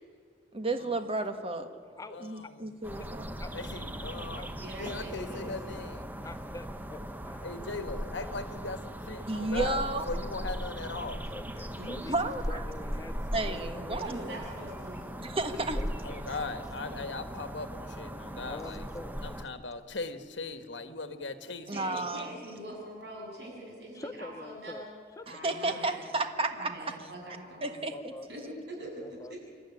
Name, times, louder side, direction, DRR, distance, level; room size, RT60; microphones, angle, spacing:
voice 1, 0.5-1.7 2.2-3.2 9.3-10.0 12.1-12.6 13.3-14.4 15.2-15.8 21.7-22.3 25.3-26.9 27.6-28.1, right 2 dB, 30° right, 7 dB, 1.6 m, -32 dB
voice 2, 2.1-2.7 3.5-6.1 7.4-11.2 16.0-18.9 19.2-22.0, left 3 dB, 75° left, 9 dB, 1.5 m, -39 dB
sound 1, 2.8-19.4, equal, 10° right, 0.9 m, -38 dB
voice 3, 4.6-5.5 11.7-12.0 13.9-15.3 21.7-24.8 25.3-26.0 26.5-27.7 28.3-29.4, right 1 dB, 65° right, -1 dB, 7.8 m, -43 dB
voice 4, 6.2-7.5 9.6-9.7 11.3-14.3 15.8-16.3 18.4-19.4 23.9-24.9 25.2-25.8 27.9-28.3 29.0-29.3, left 2 dB, 20° left, 10 dB, 0.6 m, -45 dB
26.5 x 12.5 x 9.9 m, 2.1 s
head